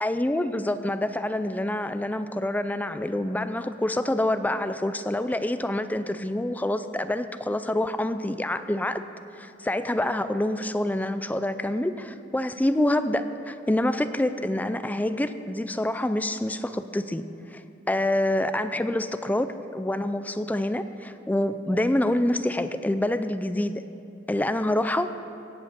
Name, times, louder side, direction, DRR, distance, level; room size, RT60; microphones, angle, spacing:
voice 1, 0.0-9.0 9.4-17.3 17.5-17.6 17.9-23.8 24.3-25.1, left 1 dB, 10° left, 11 dB, 0.4 m, -26 dB
16.5 x 8.4 x 6.8 m, 2.6 s
head